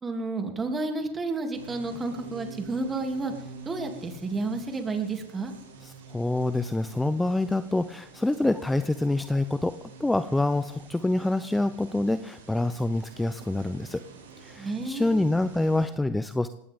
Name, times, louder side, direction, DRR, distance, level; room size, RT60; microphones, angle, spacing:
voice 1, 0.0-3.3 3.6-5.5 14.6-15.2, right 3 dB, 20° right, 4 dB, 2.8 m, -31 dB
sound 1, 1.5-15.9, right 5 dB, 90° right, 4.9 m, -48 dB
voice 2, 5.8-14.0 14.4-16.5, left 2 dB, 5° left, 12 dB, 0.6 m, -26 dB
19.5 x 16.5 x 3.7 m, 0.78 s
hypercardioid pair, 105°, 0 cm